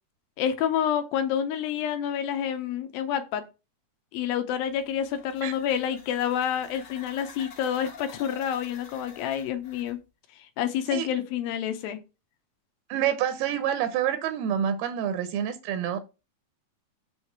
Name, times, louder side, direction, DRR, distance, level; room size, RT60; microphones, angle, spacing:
voice 1, 0.4-3.4 4.1-10.0 10.6-12.0, left 9 dB, 80° left, 2.4 m, -28 dB
sound 1, 4.7-10.0, left 5 dB, 50° left, 2.0 m, -48 dB
voice 2, 12.9-16.0, right 9 dB, 80° right, 2.5 m, -27 dB
7.1 x 3.3 x 5.6 m
omnidirectional pair, 4.5 m